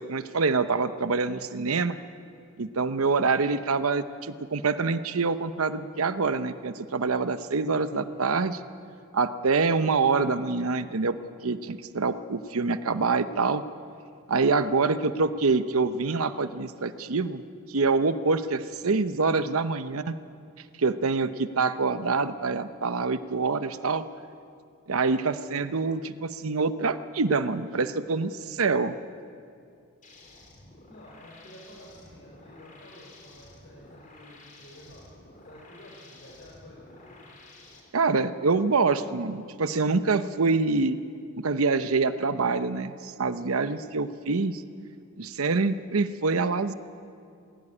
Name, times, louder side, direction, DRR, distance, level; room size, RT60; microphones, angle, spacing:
voice 1, 0.0-2.0 2.6-8.6 9.1-11.2 11.4-13.6 14.3-17.4 17.7-20.1 20.8-24.0 24.9-28.9 37.9-41.0 41.4-44.6 45.2-46.7, right 4 dB, 85° right, 11 dB, 0.8 m, -26 dB
voice 2, 7.9-8.2 14.7-15.1 25.1-25.3 30.9-35.1 35.4-37.2 43.6-43.9, left 1 dB, 55° left, -5 dB, 5.2 m, -51 dB
sound 1, 30.0-37.8, left 2 dB, 40° left, 3.9 m, -52 dB
21.0 x 16.0 x 9.9 m, 2.4 s
head